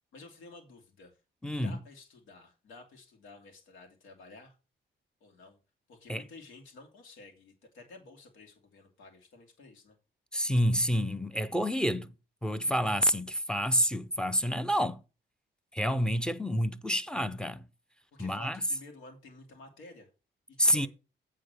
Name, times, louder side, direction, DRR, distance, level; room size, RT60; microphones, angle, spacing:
voice 1, 0.1-1.2 1.6-4.5 5.2-5.6 5.9-10.0 18.1-20.1 20.5-20.9, left 3 dB, 85° left, 2.6 m, -52 dB
voice 2, 1.4-1.8 6.1-6.2 10.3-12.1 12.4-15.0 15.7-17.7 18.2-18.6 20.6-20.9, equal, 5° left, 0.6 m, -28 dB
8.6 x 3.8 x 6.6 m
cardioid pair, 90°, 20 cm